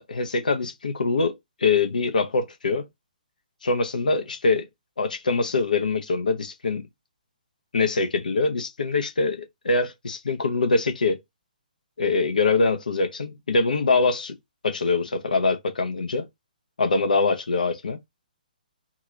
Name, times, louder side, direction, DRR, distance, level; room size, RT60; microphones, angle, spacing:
voice 1, 0.0-2.9 3.6-4.7 5.0-6.9 7.7-11.2 12.0-14.3 14.6-16.3 16.8-18.0, left 3 dB, 65° left, 0.6 m, -24 dB
2.9 x 2.4 x 3.0 m
figure-of-eight pair, 130°, 5 cm